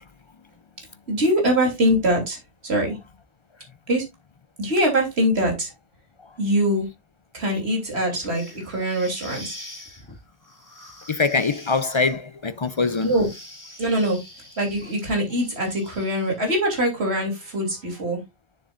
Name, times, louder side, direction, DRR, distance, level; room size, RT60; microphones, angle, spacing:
voice 1, 1.1-3.0 3.9-4.0 4.6-5.7 6.4-6.9 7.3-9.5 13.0-13.3 13.8-14.2 14.6-18.2, equal, 55° right, 3.5 m, -23 dB
sound 1, 8.2-16.5, left 1 dB, 15° left, 2.2 m, -44 dB
voice 2, 11.1-13.1, left 4 dB, 50° left, 0.3 m, -23 dB
9.3 x 7.2 x 2.5 m
omnidirectional pair, 1.3 m